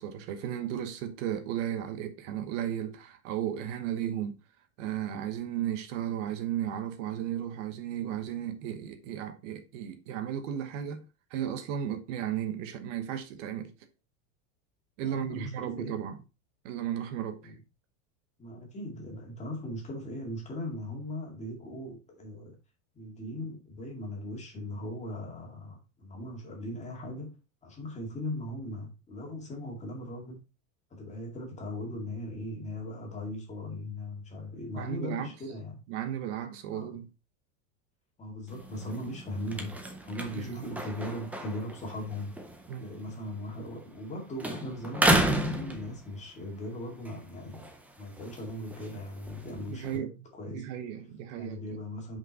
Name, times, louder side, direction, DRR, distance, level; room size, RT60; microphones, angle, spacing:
voice 1, 0.0-4.4 4.8-11.0 11.3-13.7 15.0-16.2 16.6-17.5 34.7-35.3 35.9-37.1 40.3-40.7 42.7-42.9 49.5-51.8, right 10 dB, 65° right, 1.2 m, -35 dB
voice 2, 15.1-16.0 17.4-17.5 18.4-22.6 22.9-27.4 27.6-30.4 30.9-35.8 36.7-37.0 38.2-42.4 42.8-47.7 48.0-50.6 51.3-52.2, left 1 dB, 15° left, 2.1 m, -39 dB
sound 1, 38.5-44.1 44.4-46.4 46.9-50.0, right 1 dB, 5° right, 0.4 m, -33 dB
6.0 x 5.3 x 4.0 m
supercardioid pair, 160°, 41 cm